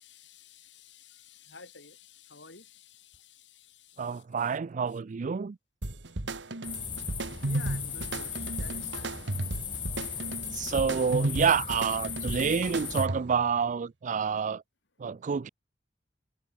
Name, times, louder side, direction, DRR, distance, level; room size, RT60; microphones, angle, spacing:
voice 1, 0.0-4.5 7.4-10.8, left 4 dB, 80° left, 6.9 m, -52 dB
voice 2, 4.0-5.6 10.5-14.6 15.0-15.5, right 6 dB, 45° right, 0.4 m, -28 dB
sound 1, 5.8-13.4, right 1 dB, 80° right, 2.0 m, -34 dB
sound 2, 6.6-13.1, left 7 dB, 30° left, 1.5 m, -38 dB
head